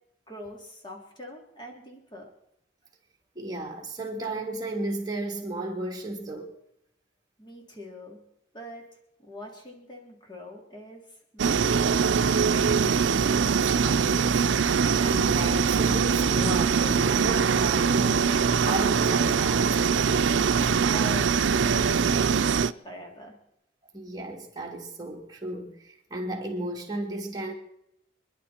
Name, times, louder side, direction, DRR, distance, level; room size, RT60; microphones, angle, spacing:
voice 1, 0.3-2.3 7.4-8.2 8.5-8.8 9.2-12.5 20.9-23.4, equal, 25° left, 3.2 m, -43 dB
voice 2, 3.3-6.5 13.1-14.5 15.0-19.8 20.4-20.8 23.9-27.5, right 2 dB, 20° right, 2.8 m, -34 dB
sound 1, 11.4-22.7, right 6 dB, 85° right, 0.5 m, -23 dB
26.5 x 11.0 x 4.4 m
head